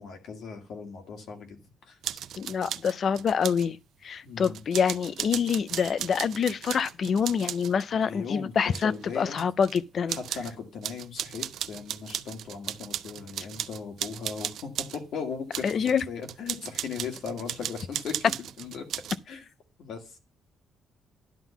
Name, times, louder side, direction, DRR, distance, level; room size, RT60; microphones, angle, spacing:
voice 1, 0.0-1.6 1.8-2.0 4.2-4.6 7.9-9.4 10.1-18.3 18.6-18.9 19.3-19.4 19.8-20.2, left 5 dB, 65° left, 2.0 m, -38 dB
sound 1, 2.0-3.7 4.4-7.9 8.6-9.8 10.1-10.5 10.8-15.0 15.5-19.2, right 10 dB, 65° right, 0.4 m, -36 dB
voice 2, 2.4-10.2 15.6-16.0, left 7 dB, 40° left, 0.4 m, -26 dB
11.0 x 3.8 x 7.0 m
cardioid pair, 170°, 0 cm